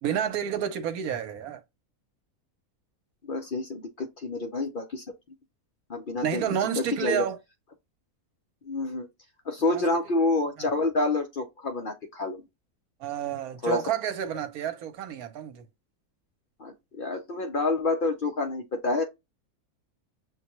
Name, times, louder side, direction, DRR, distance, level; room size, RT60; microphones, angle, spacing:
voice 1, 0.0-1.6 6.2-7.4 9.7-9.8 10.6-10.7 13.0-15.7, right 9 dB, 80° right, 1.2 m, -30 dB
voice 2, 3.3-5.0 5.9-6.4 6.8-7.3 8.7-9.1 9.5-12.4 13.6-13.8 16.6-19.0, left 2 dB, 55° left, 0.6 m, -28 dB
6.4 x 2.2 x 2.9 m
omnidirectional pair, 1.5 m